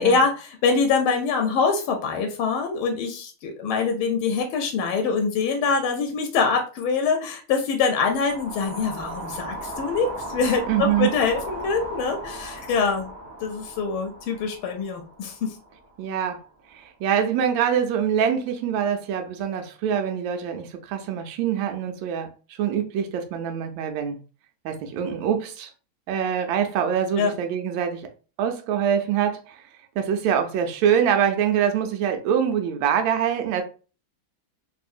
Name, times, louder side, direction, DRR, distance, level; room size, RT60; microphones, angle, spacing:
voice 1, 0.0-13.1 13.4-15.5 27.2-27.3, left 5 dB, 90° left, 1.5 m, -24 dB
sound 1, 7.9-16.2, right 1 dB, 60° right, 0.6 m, -37 dB
voice 2, 10.7-11.1 16.0-16.4 16.7-24.2 24.6-25.7 26.1-28.1 28.4-29.6 30.0-33.6, right 8 dB, 75° right, 1.3 m, -24 dB
3.6 x 2.6 x 2.4 m
omnidirectional pair, 2.2 m